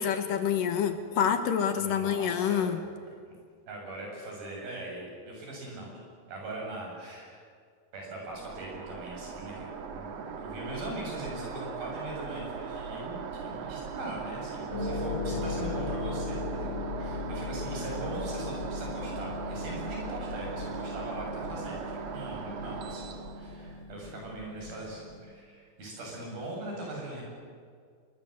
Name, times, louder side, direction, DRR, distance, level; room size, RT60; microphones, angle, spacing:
voice 1, 0.0-2.8, left 8 dB, 70° left, 9 dB, 3.0 m, -27 dB
voice 2, 1.8-2.7 3.7-6.0 6.3-7.4 7.9-27.2, right 1 dB, 75° right, -1 dB, 9.5 m, -41 dB
sound 1, 8.3-23.8, right 5 dB, 55° right, 2.3 m, -39 dB
Harp, 14.7-25.3, left 3 dB, 10° right, 5.5 m, -38 dB
25.5 x 22.5 x 8.1 m, 2.1 s
omnidirectional pair, 4.2 m